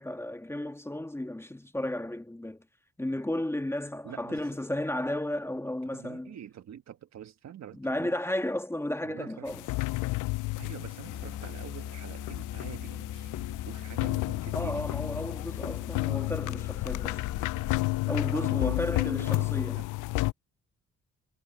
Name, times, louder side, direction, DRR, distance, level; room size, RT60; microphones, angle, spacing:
voice 1, 0.0-2.6 3.0-6.3 7.8-9.7 14.5-17.2 18.1-19.8, left 1 dB, 10° left, 1.5 m, -33 dB
voice 2, 4.0-4.4 5.9-8.2 9.0-9.5 10.6-14.9 18.3-19.8, right 9 dB, 60° right, 1.7 m, -46 dB
sound 1, 9.5-20.3, left 22 dB, 85° left, 0.5 m, -32 dB
Musical instrument, 11.0-17.9, left 10 dB, 70° left, 2.0 m, -40 dB
cardioid pair, 90°, 30 cm